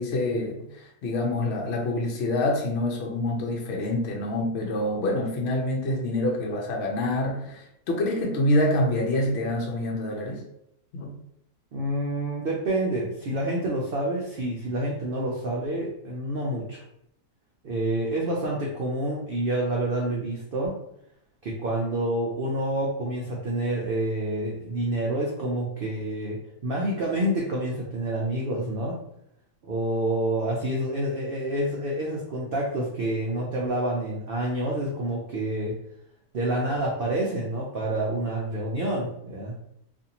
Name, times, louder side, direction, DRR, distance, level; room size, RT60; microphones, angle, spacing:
voice 1, 0.0-10.4 10.9-11.1, left 1 dB, 60° left, -1 dB, 0.7 m, -26 dB
voice 2, 11.7-16.8 17.6-20.7 21.4-29.0 29.6-35.8 36.3-39.5, right 1 dB, 80° right, -3 dB, 0.5 m, -28 dB
2.5 x 2.5 x 2.8 m, 0.74 s
omnidirectional pair, 1.6 m